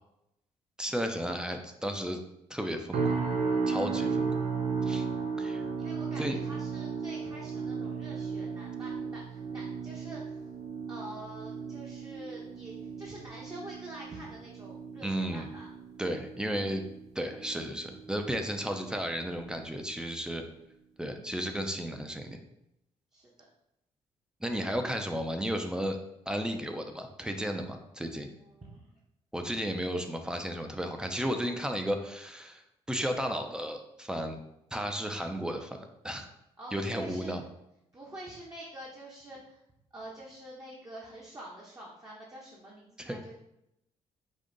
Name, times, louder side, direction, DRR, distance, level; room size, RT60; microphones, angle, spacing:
voice 1, 0.8-2.2 2.5-3.2 3.7-4.5 4.8-5.1 5.4-5.6 6.2-6.3 15.0-15.5 16.0-16.8 17.1-20.4 21.0-22.4 24.4-26.0 26.3-28.3 29.3-32.6 32.9-34.4 34.7-36.3 36.7-37.4 43.0-43.2, equal, 5° right, 5 dB, 0.7 m, -33 dB
sound 1, 2.9-18.1 18.5-18.9 19.4-19.6, right 5 dB, 65° right, 0.7 m, -35 dB
voice 2, 5.1-10.4 10.7-16.0 23.1-23.3 28.4-28.9 36.6-37.4 37.9-39.6 39.9-43.4, right 1 dB, 25° right, -4 dB, 1.1 m, -47 dB
5.3 x 2.4 x 4.0 m, 0.84 s
supercardioid pair, 70°, 13 cm